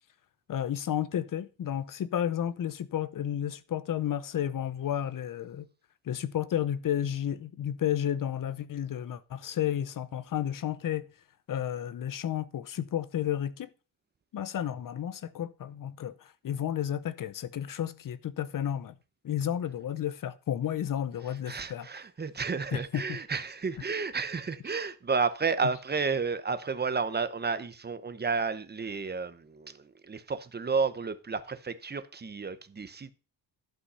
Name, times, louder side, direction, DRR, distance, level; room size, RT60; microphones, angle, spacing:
voice 1, 0.5-5.7 6.0-11.1 11.5-13.7 14.3-19.0 19.2-21.9 22.7-23.2, left 10 dB, 50° left, 0.8 m, -32 dB
voice 2, 21.5-33.1, right 5 dB, 25° right, 0.9 m, -31 dB
12.0 x 5.4 x 5.5 m
cardioid pair, 115°, 42 cm